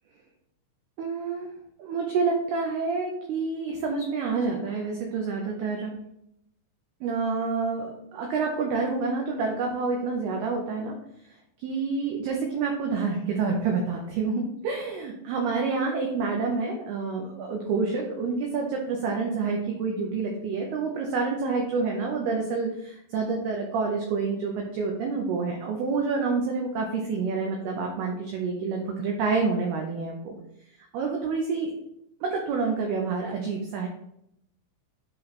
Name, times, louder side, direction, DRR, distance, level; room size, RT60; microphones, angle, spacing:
voice 1, 1.0-1.5 1.8-5.9 7.0-11.0 11.6-30.3 30.9-31.7 32.2-33.9, right 4 dB, 85° right, 1 dB, 2.2 m, -28 dB
8.2 x 3.2 x 4.2 m, 0.77 s
omnidirectional pair, 5.6 m